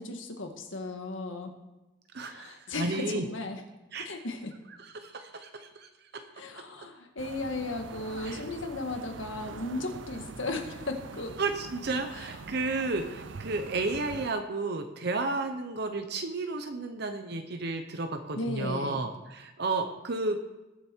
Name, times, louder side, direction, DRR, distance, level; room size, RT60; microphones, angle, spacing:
voice 1, 0.0-1.5 2.2-3.6 4.1-4.5 6.4-11.3 12.1-12.3 18.4-19.1, left 2 dB, 85° left, 5 dB, 1.7 m, -36 dB
voice 2, 2.1-3.2 3.9-4.1 4.8-5.9 8.2-8.4 11.4-20.4, right 3 dB, 55° right, 6 dB, 1.0 m, -32 dB
sound 1, 7.2-14.3, right 4 dB, 70° right, 0.6 m, -44 dB
20.5 x 7.0 x 4.6 m, 1.1 s
head